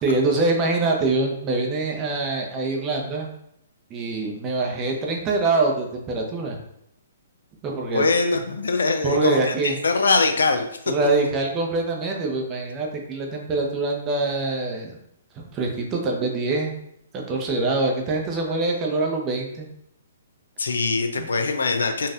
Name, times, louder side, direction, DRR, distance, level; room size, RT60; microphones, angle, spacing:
voice 1, 0.0-3.3 3.9-6.6 7.6-8.0 9.0-9.8 10.9-15.0 15.3-16.7 17.1-19.7 21.2-21.3, right 3 dB, 25° right, 0 dB, 0.7 m, -24 dB
voice 2, 7.8-10.7 20.6-22.1, left 3 dB, 75° left, 6 dB, 0.4 m, -22 dB
4.0 x 2.5 x 2.5 m, 0.75 s
figure-of-eight pair, 125°, 0 cm